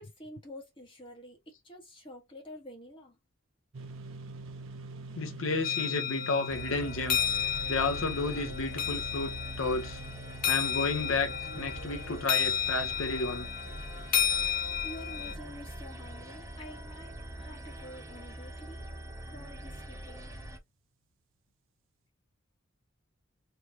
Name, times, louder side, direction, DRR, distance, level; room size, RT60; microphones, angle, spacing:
voice 1, 0.0-3.2 14.8-18.8 19.3-20.5, equal, 25° left, 1.4 m, -48 dB
sound 1, 3.7-17.2, right 2 dB, 70° right, 0.7 m, -47 dB
voice 2, 5.1-7.2 7.7-10.0 10.4-13.5, left 3 dB, 75° left, 0.8 m, -32 dB
sound 2, 5.6-15.3, left 9 dB, 45° left, 0.6 m, -32 dB
sound 3, 6.5-20.6, right 1 dB, 15° right, 0.6 m, -43 dB
3.3 x 3.1 x 2.8 m
head